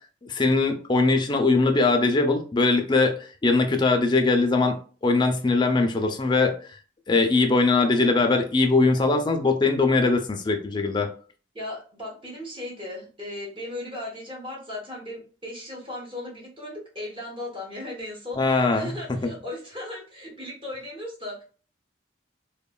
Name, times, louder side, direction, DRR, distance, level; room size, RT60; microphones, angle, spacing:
voice 1, 0.2-3.2 3.4-6.6 7.1-11.1 18.4-18.9, left 3 dB, 25° left, 4 dB, 0.4 m, -21 dB
voice 2, 11.5-21.4, left 1 dB, 30° right, -3 dB, 0.8 m, -37 dB
3.0 x 2.1 x 2.2 m, 0.40 s
head